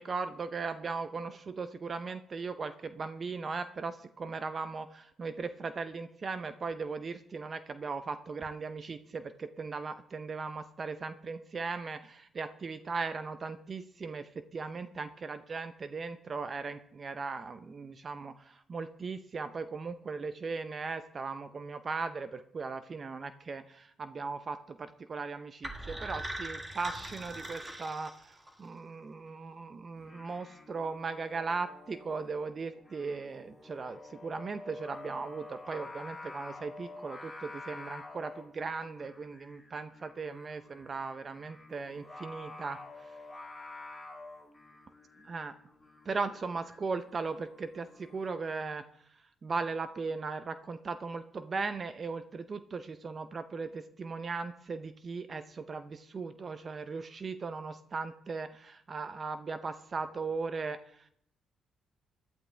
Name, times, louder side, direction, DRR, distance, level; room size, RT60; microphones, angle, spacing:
voice 1, 0.0-43.2 45.3-45.5 46.0-61.1, right 4 dB, 40° right, 10 dB, 0.6 m, -38 dB
sound 1, 25.6-28.7, right 1 dB, 15° right, 1.6 m, -41 dB
Singing, 30.0-48.4, left 2 dB, 5° left, 4.1 m, -49 dB
16.5 x 11.5 x 3.4 m, 0.71 s
cardioid pair, 90°, 0 cm